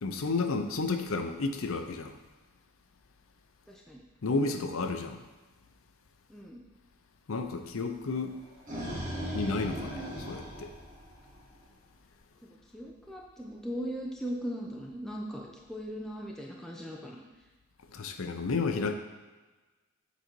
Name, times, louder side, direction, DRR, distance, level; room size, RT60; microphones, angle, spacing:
voice 1, 0.0-2.2 4.2-5.2 7.3-8.3 9.3-10.7 17.9-18.9, left 3 dB, 75° left, 6 dB, 0.6 m, -32 dB
voice 2, 3.7-4.0 6.3-6.6 12.7-17.2, equal, ahead, -2 dB, 0.5 m, -39 dB
sound 1, 8.3-11.6, equal, 40° right, 2.1 m, -38 dB
7.3 x 3.9 x 4.5 m, 1.2 s
head